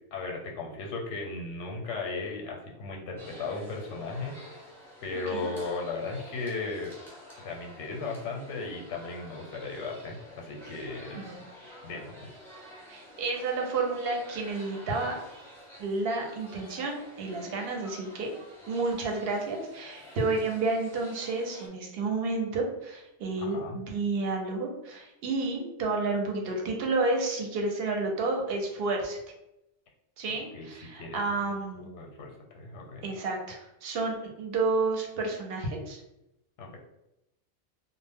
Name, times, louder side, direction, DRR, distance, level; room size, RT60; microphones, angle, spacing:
voice 1, 0.1-4.7 5.0-7.0 7.4-11.2 11.8-12.3 23.4-23.8 30.5-30.7 30.9-33.1 36.6-36.8, left 3 dB, 90° left, 0 dB, 0.9 m, -36 dB
sound 1, 3.2-21.7, left 1 dB, 5° left, 0.5 m, -49 dB
voice 2, 12.9-15.2 15.8-18.3 18.7-29.2 30.2-31.9 33.0-36.0, right 3 dB, 65° right, 1 dB, 0.7 m, -30 dB
2.0 x 2.0 x 3.4 m, 0.87 s
omnidirectional pair, 1.2 m